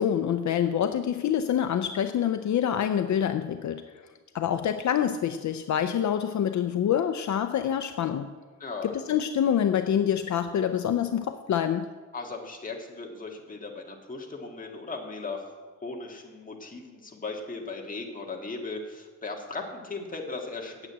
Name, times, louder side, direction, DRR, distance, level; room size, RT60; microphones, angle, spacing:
voice 1, 0.0-3.9 4.3-8.3 8.8-11.9, left 9 dB, 65° left, 9 dB, 0.5 m, -26 dB
voice 2, 8.6-8.9 12.1-20.9, left 3 dB, 25° left, 1 dB, 1.8 m, -37 dB
8.9 x 8.0 x 8.8 m, 1.4 s
wide cardioid pair, 145°, 31 cm